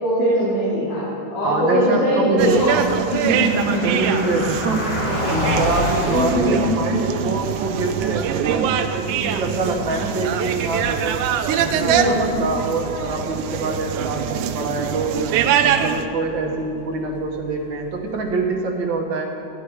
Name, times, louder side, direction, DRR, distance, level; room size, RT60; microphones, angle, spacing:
voice 1, 0.0-1.0 1.3-2.7 3.0-3.9 6.1-6.6 11.7-12.2, equal, 90° left, -9 dB, 4.1 m, -21 dB
voice 2, 1.4-2.7 3.8-5.0 5.3-11.2 11.6-15.3 15.6-19.3, right 3 dB, 50° right, 1 dB, 1.6 m, -25 dB
Car passing by, 2.4-18.5, left 1 dB, 70° left, 3.6 m, -32 dB
sound 1, 2.4-16.1, right 8 dB, 85° right, 2.1 m, -24 dB
15.0 x 10.5 x 4.8 m, 2.8 s
omnidirectional pair, 3.5 m